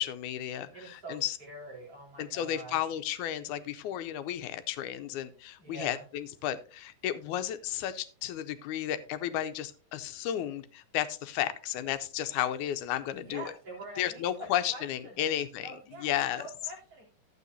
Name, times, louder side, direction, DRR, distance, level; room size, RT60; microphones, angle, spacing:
voice 1, 0.0-1.4 2.2-13.5 14.0-15.7 16.0-16.4, left 11 dB, 85° left, 11 dB, 2.1 m, -33 dB
voice 2, 0.7-2.8 5.6-6.0 13.1-17.0, right 2 dB, 50° right, -4 dB, 4.5 m, -45 dB
12.0 x 8.3 x 2.7 m, 0.37 s
omnidirectional pair, 3.4 m